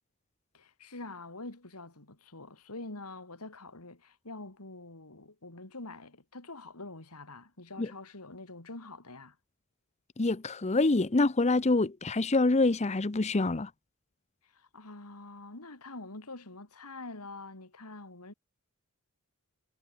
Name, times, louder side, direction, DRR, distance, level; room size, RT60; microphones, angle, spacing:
voice 1, 0.5-9.4 14.4-18.3, left 2 dB, 90° left, 3.2 m, -45 dB
voice 2, 10.2-13.7, left 2 dB, 30° left, 0.7 m, -26 dB
head